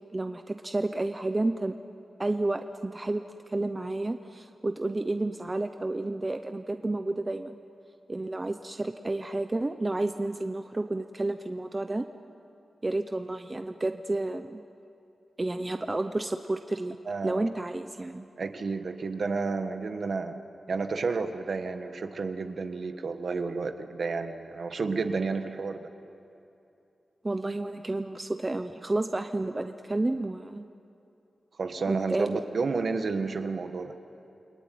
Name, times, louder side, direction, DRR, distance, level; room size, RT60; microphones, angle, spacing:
voice 1, 0.1-1.8 2.2-7.6 8.1-12.1 12.8-14.6 15.4-16.9 17.2-18.2 27.2-30.7 31.9-32.4, right 2 dB, 20° right, 7 dB, 0.7 m, -31 dB
voice 2, 17.0-17.5 18.4-20.4 20.7-25.9 31.6-33.9, right 4 dB, 55° right, 7 dB, 1.5 m, -31 dB
29.5 x 21.5 x 9.4 m, 2.7 s
wide cardioid pair, 165°, 0 cm